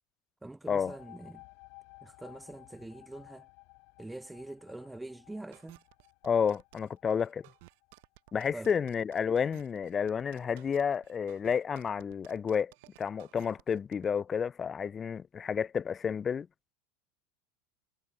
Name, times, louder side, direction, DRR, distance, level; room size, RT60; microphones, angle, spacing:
voice 1, 0.4-1.4 2.0-3.5 4.0-5.8 8.5-8.7, right 2 dB, 5° right, 2.5 m, -44 dB
sound 1, 0.6-8.1, left 33 dB, 60° left, 7.6 m, -56 dB
sound 2, 5.5-14.1, right 27 dB, 65° right, 5.3 m, -57 dB
voice 2, 6.2-7.4 8.3-12.7 13.0-16.5, left 7 dB, 25° left, 1.8 m, -30 dB
hypercardioid pair, 100°, 0 cm